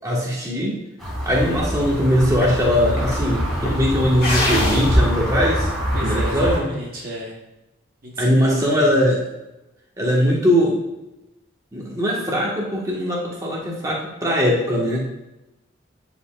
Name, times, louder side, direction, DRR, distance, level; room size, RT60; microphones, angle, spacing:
voice 1, 0.0-0.8 1.2-5.7 6.0-6.7 8.2-9.2 10.0-10.8 11.7-15.0, equal, 15° right, -4 dB, 1.4 m, -20 dB
sound 1, 1.0-6.6, equal, ahead, 2.3 m, -25 dB
sound 2, 2.1-6.3, left 1 dB, 50° left, 1.6 m, -26 dB
voice 2, 5.9-7.3 8.0-8.8, equal, 45° right, -2 dB, 1.0 m, -32 dB
9.3 x 4.9 x 2.4 m, 0.95 s
head